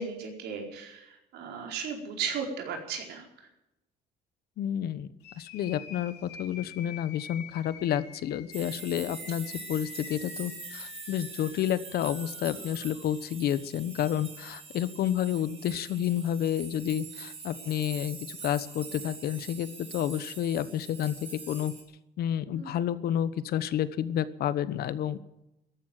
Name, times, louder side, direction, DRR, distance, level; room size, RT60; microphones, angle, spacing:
voice 1, 0.0-3.3 22.5-22.7, right 5 dB, 80° right, 2 dB, 4.6 m, -35 dB
voice 2, 4.6-5.1 5.4-21.1 21.5-21.7 22.2-25.2, left 10 dB, 65° left, 15 dB, 1.1 m, -30 dB
sound 1, 5.2-13.2, left 7 dB, 85° left, 3.2 m, -48 dB
sound 2, 8.5-21.8, right 4 dB, 35° right, 4.4 m, -44 dB
14.0 x 11.5 x 9.0 m, 0.89 s
cardioid pair, 110°, 17 cm